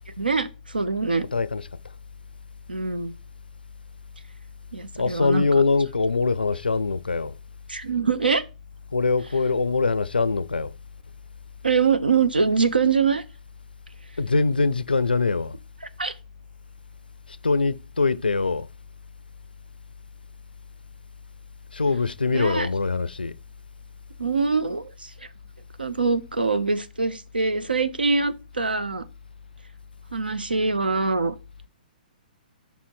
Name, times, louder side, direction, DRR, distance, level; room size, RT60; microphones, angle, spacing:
voice 1, 0.2-1.2 2.7-3.1 4.7-5.5 7.7-8.4 11.6-13.2 16.0-16.1 22.3-22.7 24.2-25.1 25.8-29.1 30.1-31.4, right 4 dB, 85° right, 0.7 m, -24 dB
voice 2, 1.3-1.7 4.9-7.4 8.9-10.7 14.2-15.6 17.3-18.7 21.7-23.4, left 4 dB, 90° left, 0.4 m, -23 dB
5.6 x 4.3 x 4.6 m
figure-of-eight pair, 125°, 5 cm